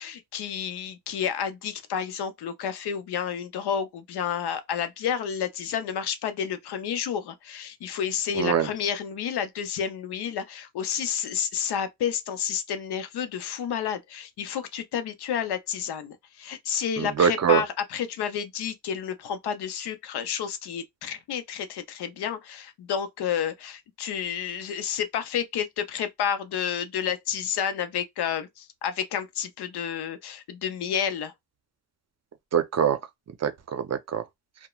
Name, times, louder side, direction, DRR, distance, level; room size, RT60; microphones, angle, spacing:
voice 1, 0.0-31.3, left 8 dB, 90° left, 0.6 m, -30 dB
voice 2, 8.4-8.7 17.0-17.6 32.5-33.0 33.4-34.2, right 8 dB, 45° right, 0.5 m, -23 dB
3.0 x 2.1 x 2.2 m
cardioid pair, 95°, 38 cm